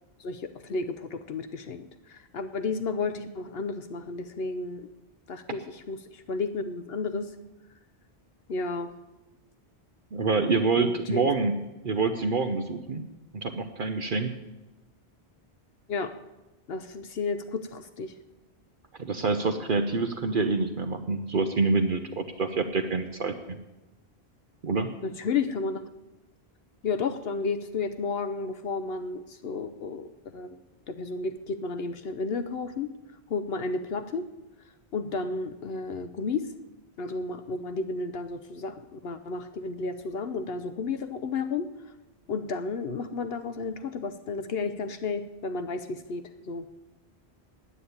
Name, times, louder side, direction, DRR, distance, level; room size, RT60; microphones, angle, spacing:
voice 1, 0.2-4.9 5.3-7.3 8.5-8.9 10.8-11.2 15.9-16.1 16.7-18.1 25.0-25.8 26.8-30.5 30.9-32.9 33.3-34.3 34.9-36.5 37.0-41.7 42.3-46.7, left 4 dB, 70° left, 10 dB, 0.9 m, -32 dB
voice 2, 10.1-11.6 11.8-13.0 13.3-14.3 19.0-23.6 24.6-24.9, right 4 dB, 55° right, 7 dB, 0.9 m, -26 dB
9.8 x 8.6 x 9.5 m, 1.1 s
omnidirectional pair, 1.1 m